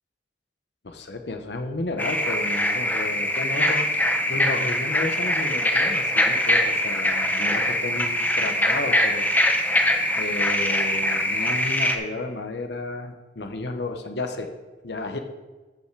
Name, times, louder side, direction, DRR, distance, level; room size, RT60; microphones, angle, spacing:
voice 1, 0.8-3.9 4.3-9.3 10.2-14.5 14.8-15.2, left 2 dB, 70° left, 6 dB, 1.0 m, -32 dB
sound 1, 2.0-11.9, left 1 dB, 10° left, 0.8 m, -23 dB
13.5 x 5.7 x 4.7 m, 1.3 s
head